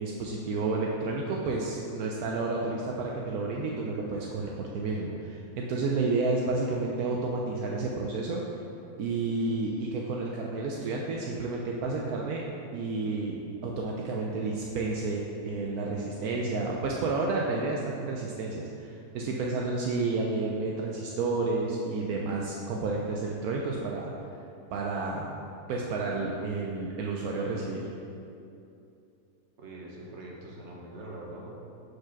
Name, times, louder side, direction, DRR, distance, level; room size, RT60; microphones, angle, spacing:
voice 1, 0.0-8.4 9.0-12.4 12.7-24.1 24.7-25.3 25.7-27.9, right 3 dB, 75° right, -2 dB, 1.1 m, -31 dB
voice 2, 29.6-31.5, right 1 dB, 50° right, -2 dB, 1.2 m, -43 dB
4.8 x 4.7 x 5.8 m, 2.6 s
omnidirectional pair, 1.6 m